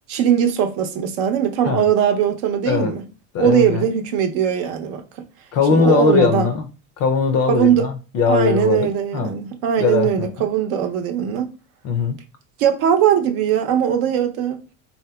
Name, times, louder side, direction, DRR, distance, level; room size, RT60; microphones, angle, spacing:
voice 1, 0.1-3.0 3.4-5.0 5.7-6.5 7.5-7.9 8.3-11.5 12.6-14.6, right 9 dB, 70° right, 0.7 m, -20 dB
voice 2, 2.7-3.0 3.3-3.9 5.5-6.7 7.0-9.3 9.8-10.3 11.8-12.2, left 5 dB, 40° left, 0.4 m, -20 dB
3.6 x 2.7 x 2.2 m
cardioid pair, 150°, 41 cm